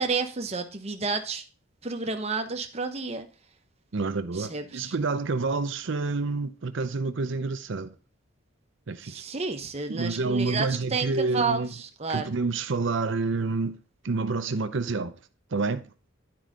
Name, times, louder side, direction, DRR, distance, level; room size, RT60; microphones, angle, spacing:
voice 1, 0.0-1.4 1.8-3.3 4.3-4.9 9.0-12.3, right 4 dB, 30° right, 0.9 m, -30 dB
voice 2, 3.9-7.9 8.9-9.2 9.9-11.7 12.1-13.8 14.0-15.2 15.5-15.9, right 3 dB, 60° right, 0.6 m, -28 dB
10.0 x 4.7 x 3.8 m
head